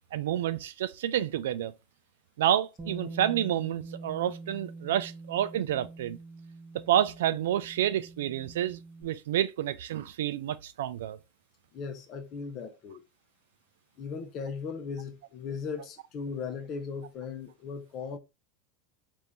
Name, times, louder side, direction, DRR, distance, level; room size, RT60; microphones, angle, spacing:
voice 1, 0.1-1.7 2.4-6.2 6.7-11.2, right 11 dB, 85° right, 0.4 m, -29 dB
Bass guitar, 2.8-9.0, right 3 dB, 20° right, 0.9 m, -44 dB
voice 2, 11.7-13.0 14.0-18.2, left 5 dB, 40° left, 0.7 m, -37 dB
3.6 x 2.6 x 4.3 m
supercardioid pair, 125°, 0 cm